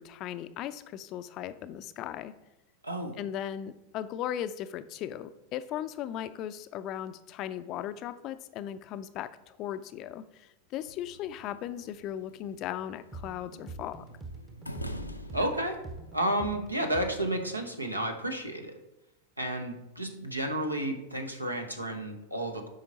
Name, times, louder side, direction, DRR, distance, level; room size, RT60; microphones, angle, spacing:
voice 1, 0.0-2.3 3.2-14.0, left 11 dB, 35° left, 12 dB, 0.4 m, -37 dB
voice 2, 2.8-3.2 15.3-15.8 16.1-18.7 19.4-22.7, right 1 dB, 85° right, 4 dB, 1.0 m, -31 dB
sound 1, 10.8-17.5, equal, 90° left, 0.6 m, -46 dB
sound 2, 13.1-17.6, right 3 dB, 15° right, 0.8 m, -45 dB
7.9 x 5.1 x 4.0 m, 0.95 s
figure-of-eight pair, 90°, 0 cm